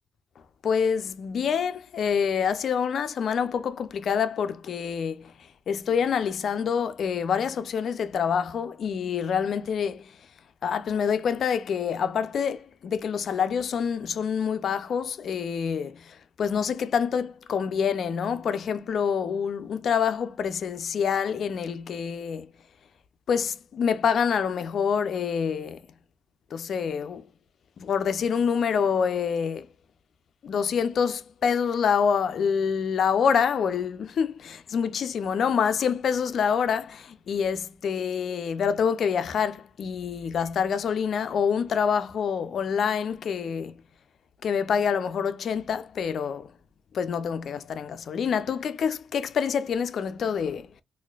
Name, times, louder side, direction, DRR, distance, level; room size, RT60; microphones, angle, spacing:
voice 1, 0.6-5.3 5.7-10.1 10.6-22.5 23.3-25.8 26.5-27.2 27.8-29.7 30.4-43.7 44.4-46.5 46.9-50.8, left 7 dB, 60° left, 0.4 m, -26 dB
4.1 x 2.5 x 2.3 m
cardioid pair, 125°, 0 cm